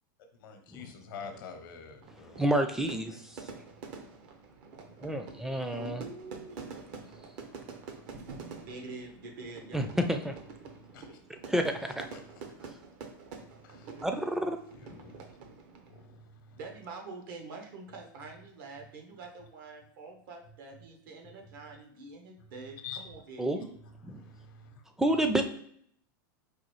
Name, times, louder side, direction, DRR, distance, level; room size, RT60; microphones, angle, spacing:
voice 1, 0.4-2.5 10.8-11.2 12.1-12.4 13.6-14.1 14.7-15.3 15.9-16.6 22.8-23.0 24.0-24.7, left 6 dB, 75° left, 6 dB, 0.7 m, -47 dB
Fire / Fireworks, 2.0-16.0, right 4 dB, 55° right, 0.7 m, -47 dB
voice 2, 2.4-3.1 5.0-6.0 9.7-10.3 11.5-12.1 14.0-14.6 23.4-23.7 24.0-24.2 25.0-25.4, right 1 dB, 5° right, 6 dB, 0.4 m, -29 dB
voice 3, 5.8-6.6 8.7-10.0 16.6-23.7, right 3 dB, 70° right, 2 dB, 1.1 m, -46 dB
4.8 x 2.3 x 3.1 m, 0.65 s
hypercardioid pair, 120°, 11 cm